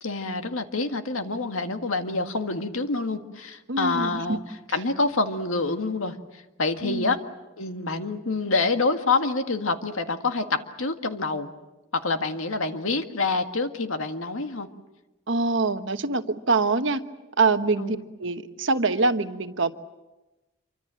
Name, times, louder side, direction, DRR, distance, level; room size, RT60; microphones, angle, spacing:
voice 1, 0.0-4.4 4.7-7.2 7.6-11.5 11.9-14.7 17.8-18.0, left 3 dB, 90° left, 7 dB, 1.8 m, -27 dB
voice 2, 3.7-4.4 6.8-7.1 15.3-17.0 17.4-19.7, right 3 dB, 65° right, 8 dB, 1.3 m, -24 dB
27.0 x 24.5 x 7.6 m, 1.0 s
head